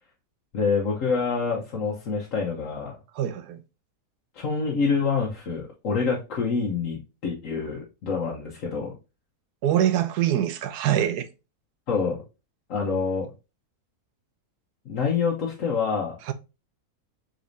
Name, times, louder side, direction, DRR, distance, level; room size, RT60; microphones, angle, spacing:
voice 1, 0.5-2.9 4.3-8.9 11.9-12.2 12.7-13.3 14.8-16.2, left 5 dB, 60° left, 1.3 m, -26 dB
voice 2, 3.1-3.6 9.6-11.3 16.3-16.4, right 11 dB, 85° right, 1.2 m, -24 dB
4.8 x 4.1 x 2.6 m
omnidirectional pair, 1.7 m